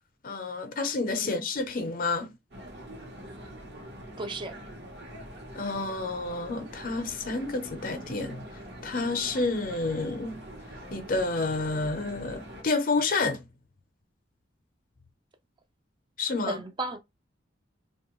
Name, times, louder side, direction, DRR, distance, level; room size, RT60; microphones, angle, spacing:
voice 1, 0.2-2.3 5.5-8.4 8.8-10.4 10.9-13.5 16.2-16.6, left 3 dB, 50° left, 0.6 m, -29 dB
sound 1, 2.5-12.6, equal, 60° right, 0.9 m, -44 dB
voice 2, 4.2-4.6 16.4-17.0, right 2 dB, 25° right, 0.4 m, -34 dB
2.9 x 2.2 x 3.0 m
head